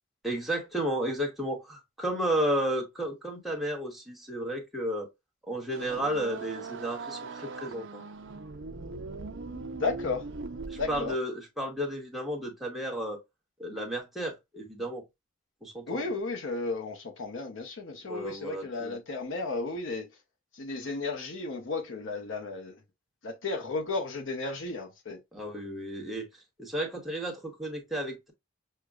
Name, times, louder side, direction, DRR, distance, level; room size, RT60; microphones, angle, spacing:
voice 1, 0.2-5.1 5.5-8.0 10.7-13.2 13.6-15.0 15.6-16.1 18.0-19.0 25.3-26.3 26.6-28.3, right 1 dB, ahead, 1.1 m, -33 dB
sound 1, 5.7-11.1, right 3 dB, 65° right, 0.6 m, -40 dB
voice 2, 9.5-10.3 10.7-11.2 15.9-20.1 20.5-22.8 23.2-25.2, left 3 dB, 65° left, 0.7 m, -34 dB
6.4 x 2.2 x 2.3 m
head